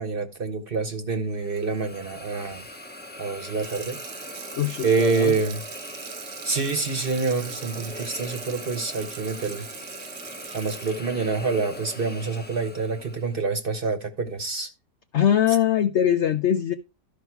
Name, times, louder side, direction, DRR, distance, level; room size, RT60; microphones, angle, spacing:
voice 1, 0.0-2.6 3.2-4.0 4.8-5.6 6.4-9.6 10.5-14.7, right 4 dB, 40° right, 1.0 m, -27 dB
Hiss, 1.3-13.4, left 1 dB, 10° left, 0.6 m, -41 dB
Water tap faucet / Sink (filling or washing), 3.4-12.6 13.0-13.1, right 9 dB, 75° right, 1.4 m, -42 dB
voice 2, 4.6-5.3 15.1-16.7, left 10 dB, 70° left, 0.6 m, -22 dB
12.5 x 5.1 x 4.6 m
omnidirectional pair, 1.8 m